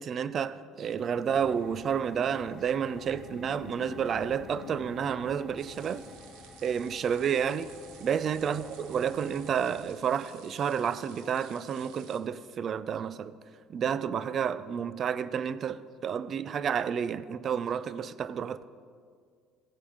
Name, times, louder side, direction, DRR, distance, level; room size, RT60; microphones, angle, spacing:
voice 1, 0.0-6.0 6.6-7.7 8.0-13.4 13.7-18.7, right 7 dB, 50° right, 0.4 m, -30 dB
sound 1, 1.0-6.1, left 7 dB, 75° left, 0.6 m, -50 dB
sound 2, 1.3-9.8, left 2 dB, ahead, 1.9 m, -51 dB
sound 3, 5.6-12.2, right 8 dB, 75° right, 0.8 m, -54 dB
15.5 x 5.3 x 5.0 m
supercardioid pair, 75°, 0 cm